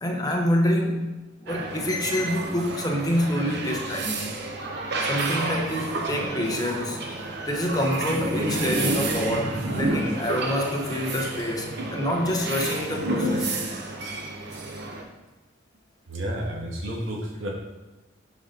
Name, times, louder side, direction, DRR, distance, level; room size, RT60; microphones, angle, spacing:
voice 1, 0.0-1.1 1.4-4.2 5.0-7.0 7.5-13.6, left 1 dB, 20° left, 1 dB, 1.0 m, -27 dB
sound 1, 1.5-15.0, right 2 dB, 60° right, 1.0 m, -30 dB
voice 2, 16.1-17.5, equal, 85° right, -2 dB, 1.7 m, -31 dB
9.9 x 4.3 x 3.9 m, 1.1 s
head